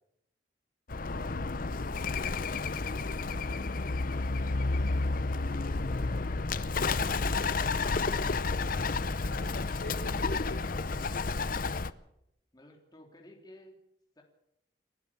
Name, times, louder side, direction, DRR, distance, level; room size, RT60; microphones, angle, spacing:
Bird, 0.9-11.9, left 3 dB, 50° left, 0.7 m, -31 dB
voice 1, 1.0-4.2 9.3-11.5, left 2 dB, 85° left, 4 dB, 5.2 m, -48 dB
voice 2, 4.9-7.5 12.5-13.7 14.1-14.2, left 1 dB, 20° left, 1 dB, 3.1 m, -54 dB
30.0 x 12.0 x 7.4 m, 0.81 s
head